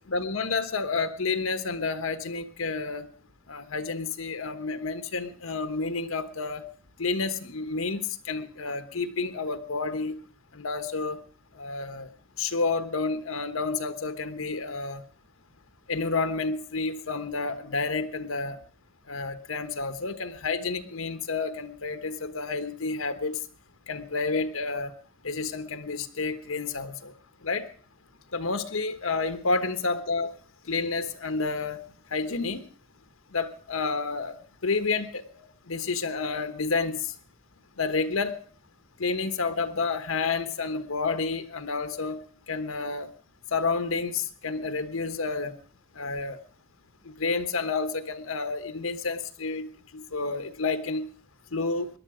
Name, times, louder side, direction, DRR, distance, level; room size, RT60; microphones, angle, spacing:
voice 1, 0.1-3.1 3.5-6.6 7.0-8.0 8.3-10.2 10.5-11.2 11.6-12.1 12.4-15.0 15.9-18.6 19.1-23.4 23.9-24.9 25.2-27.1 27.4-27.6 28.3-30.3 30.7-31.8 32.1-32.6 33.3-34.3 34.6-37.0 37.8-38.4 39.0-42.2 42.5-43.1 43.5-45.6 46.0-46.4 47.0-49.7 49.9-51.1 51.5-51.9, left 4 dB, 85° left, 9 dB, 1.2 m, -30 dB
18.0 x 11.0 x 5.0 m, 0.43 s
head